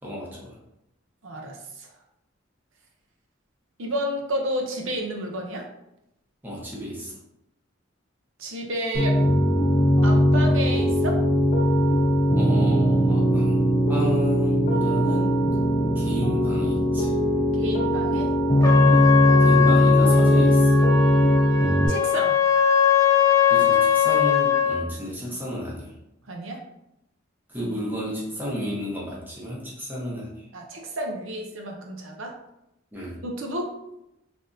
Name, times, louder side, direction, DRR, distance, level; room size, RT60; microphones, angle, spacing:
voice 1, 0.0-0.6 6.4-7.2 12.4-15.3 15.9-17.1 18.8-19.1 19.4-20.8 23.5-25.9 27.5-30.3 32.9-33.2, equal, 10° right, -5 dB, 0.9 m, -32 dB
voice 2, 1.2-1.9 3.8-5.6 8.4-9.2 10.0-11.2 17.6-18.3 21.9-22.4 26.3-26.6 27.6-27.7 30.5-32.3 33.2-33.7, right 1 dB, 70° right, 1 dB, 0.6 m, -31 dB
Piano, 8.9-21.9, equal, 40° left, 0.8 m, -19 dB
Trumpet, 18.6-24.8, left 9 dB, 15° left, 0.4 m, -21 dB
3.4 x 2.6 x 2.6 m, 0.84 s
head